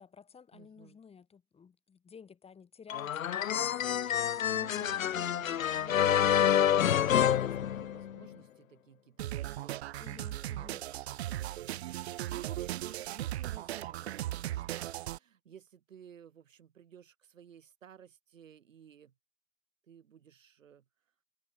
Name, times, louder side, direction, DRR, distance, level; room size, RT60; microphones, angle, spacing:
voice 1, 0.0-4.4 10.0-10.8, left 6 dB, 15° left, 6.9 m, -54 dB
voice 2, 0.5-1.0 4.5-19.1 19.8-20.8, right 8 dB, 70° right, 3.5 m, -55 dB
sound 1, 2.9-8.3, left 10 dB, 80° left, 0.6 m, -28 dB
sound 2, 9.2-15.2, right 14 dB, 50° right, 0.6 m, -37 dB
figure-of-eight pair, 110°, 40 cm